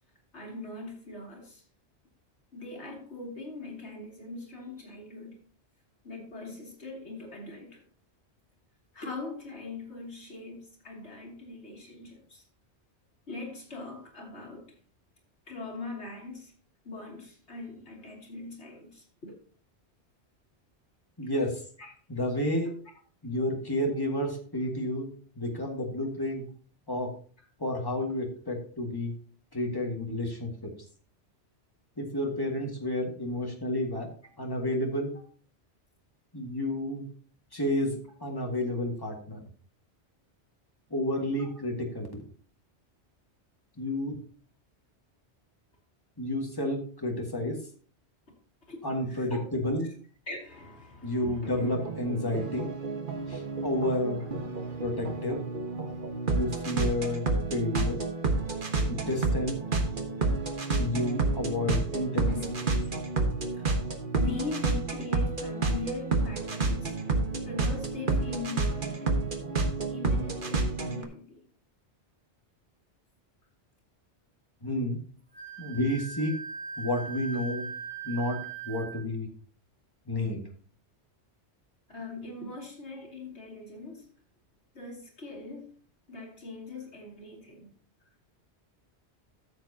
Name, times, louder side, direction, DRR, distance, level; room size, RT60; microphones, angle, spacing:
voice 1, 0.3-1.6 2.5-5.4 6.0-7.8 8.9-12.4 13.3-14.7 15.5-16.5 16.8-19.3 21.2-21.3 21.8-21.9 41.4-41.5 48.7-48.8 49.1-49.5 50.3-51.8 52.3-52.4 53.1-53.7 54.2-54.3 54.6-55.0 62.3-63.7 64.1-67.0 67.4-69.2 69.9-71.4 81.9-84.1 84.7-85.7 86.1-87.7, left 3 dB, 75° left, 2.9 m, -41 dB
voice 2, 21.2-21.6 22.1-22.7 23.2-25.1 25.4-26.5 26.9-27.1 27.6-29.1 29.5-30.7 32.0-34.1 34.4-35.1 36.3-37.1 37.5-39.4 40.9-42.2 43.8-44.2 46.2-47.6 48.8-49.9 51.0-52.7 53.3-54.2 54.8-55.4 56.3-57.2 57.5-58.0 58.9-59.6 60.8-62.3 74.6-75.0 75.6-76.3 76.8-77.6 78.0-78.4 78.7-79.3 80.1-80.4, left 1 dB, 20° left, 1.9 m, -30 dB
sound 1, 51.4-71.0, right 3 dB, 50° right, 1.5 m, -30 dB
Wind instrument woodwind instrument, 75.3-79.0, right 5 dB, 10° right, 1.3 m, -40 dB
13.5 x 7.4 x 2.8 m
omnidirectional pair, 1.2 m